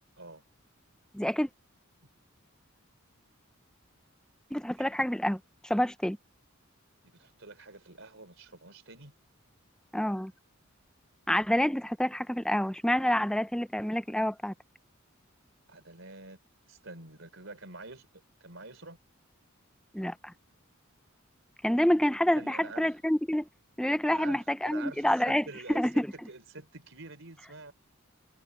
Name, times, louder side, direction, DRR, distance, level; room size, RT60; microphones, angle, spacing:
voice 1, 1.1-1.5 4.5-6.2 9.9-10.3 11.3-14.5 19.9-20.3 21.6-23.5 23.8-25.4 25.7-26.1, equal, 5° left, 0.6 m, -28 dB
voice 2, 7.0-9.1 15.7-16.4 16.7-18.1 18.4-19.0 22.3-23.0 24.1-27.7, right 3 dB, 65° right, 4.3 m, -47 dB
head